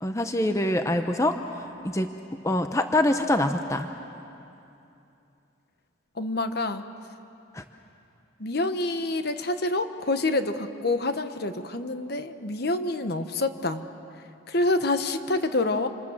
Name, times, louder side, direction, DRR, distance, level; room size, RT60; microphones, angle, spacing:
voice 1, 0.0-1.4 1.8-2.1 2.4-3.9 7.5-7.6, left 1 dB, 15° left, 6 dB, 0.8 m, -24 dB
voice 2, 6.2-6.8 8.4-13.8 14.5-15.9, left 2 dB, 55° left, 8 dB, 1.2 m, -27 dB
28.0 x 27.0 x 7.4 m, 2.7 s
head